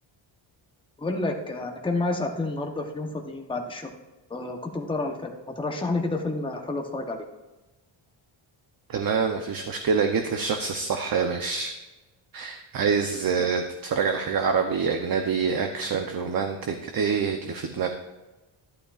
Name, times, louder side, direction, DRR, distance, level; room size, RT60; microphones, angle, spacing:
voice 1, 1.0-3.9 4.3-7.3 13.4-13.5, left 2 dB, 10° left, 2 dB, 0.9 m, -30 dB
voice 2, 8.9-11.7 12.3-17.9, right 5 dB, 45° right, 5 dB, 0.7 m, -26 dB
11.5 x 11.0 x 2.4 m, 1.1 s
wide cardioid pair, 130°, 48 cm